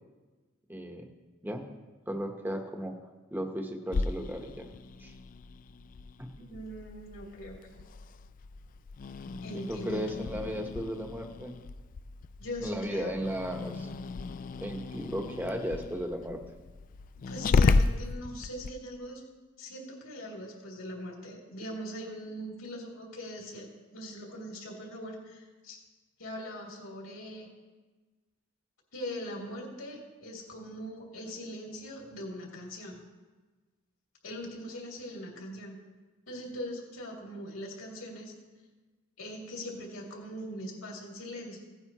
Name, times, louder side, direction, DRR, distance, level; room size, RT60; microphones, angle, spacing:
voice 1, 0.7-1.1 1.4-1.7 2.1-2.9 3.3-4.7 5.0-5.1 6.2-6.3 9.5-11.5 12.6-13.9 14.6-16.4, equal, 10° right, 4 dB, 1.0 m, -35 dB
Growling, 3.9-18.7, left 3 dB, 40° left, 0.3 m, -33 dB
voice 2, 6.4-7.8 9.4-10.1 12.4-13.1 17.3-19.2 19.6-25.8 26.2-27.5 28.9-33.0 34.2-35.8 36.3-38.3 39.2-41.6, equal, 80° left, -2 dB, 2.8 m, -41 dB
17.0 x 9.1 x 3.0 m, 1.3 s
head